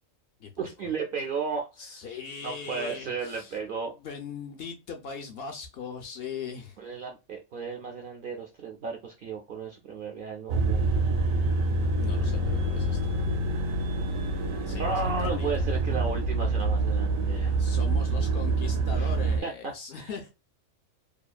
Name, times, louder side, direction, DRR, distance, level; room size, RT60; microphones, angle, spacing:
voice 1, 0.6-3.9 6.8-11.0 14.8-17.6 18.9-19.1 19.4-20.1, right 5 dB, 65° right, 0.5 m, -34 dB
voice 2, 1.8-3.6 4.0-6.8 12.0-13.1 14.7-15.5 17.6-20.3, left 6 dB, 65° left, 0.7 m, -40 dB
sound 1, 10.5-19.4, right 2 dB, 85° right, 1.0 m, -26 dB
2.7 x 2.3 x 2.3 m
omnidirectional pair, 1.3 m